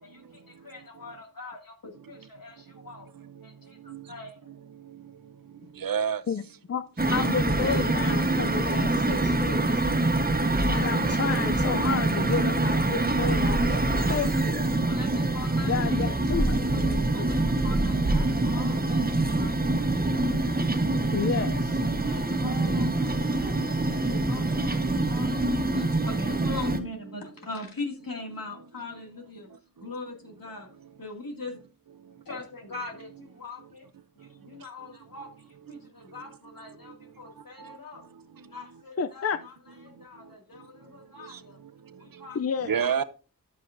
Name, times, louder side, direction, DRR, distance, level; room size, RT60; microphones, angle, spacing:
voice 1, 0.0-3.1 3.4-4.5 14.8-16.1 17.1-20.4 22.0-23.8 24.1-30.7 31.0-31.6 32.2-33.9 34.2-38.0 38.4-41.6 41.9-43.0, left 3 dB, 80° left, 2.3 m, -42 dB
voice 2, 4.5-5.0 5.8-6.2 22.3-22.4 23.1-23.6 24.0-24.9 37.6-37.8 41.2-41.4 42.6-43.0, right 7 dB, 80° right, 0.7 m, -32 dB
sound 1, 7.0-26.8, right 2 dB, 25° right, 1.1 m, -25 dB
voice 3, 7.1-9.8 10.7-14.6 15.6-17.4 21.1-21.8 39.0-39.4 42.4-42.8, left 6 dB, 45° left, 0.4 m, -31 dB
11.0 x 7.9 x 2.6 m
wide cardioid pair, 60°, 34 cm